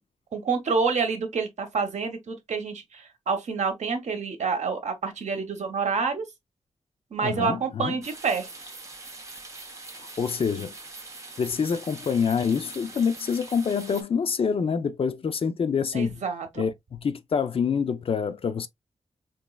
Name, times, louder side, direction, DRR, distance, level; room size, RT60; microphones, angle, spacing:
voice 1, 0.3-6.2 7.1-8.5 15.9-16.7, right 5 dB, 85° right, 0.9 m, -28 dB
voice 2, 7.2-8.0 10.2-10.7 11.4-16.2 16.6-18.7, left 6 dB, 55° left, 0.5 m, -26 dB
sound 1, 8.0-14.0, right 3 dB, 25° right, 0.9 m, -43 dB
4.4 x 3.0 x 2.3 m
wide cardioid pair, 175°, 12 cm